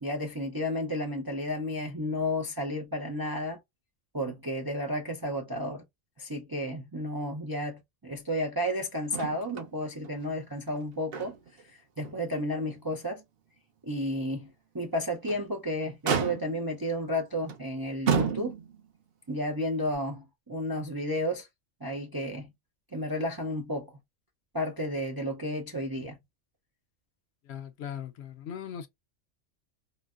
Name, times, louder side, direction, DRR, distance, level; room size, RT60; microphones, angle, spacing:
voice 1, 0.0-3.6 4.1-5.8 6.2-11.3 11.7-13.2 13.8-18.5 19.3-21.5 21.8-22.5 22.9-23.9 24.5-26.2, equal, 30° right, 0.4 m, -32 dB
Motor vehicle (road), 9.1-9.7 10.0-10.1 10.7-11.6 12.0-12.2 12.7-12.8 15.0-15.5 16.0-16.7 17.5-17.6 18.1-18.9 19.9-20.0, right 6 dB, 55° right, 0.9 m, -31 dB
voice 2, 27.5-28.9, left 8 dB, 65° left, 0.8 m, -39 dB
3.8 x 2.1 x 2.3 m
omnidirectional pair, 1.2 m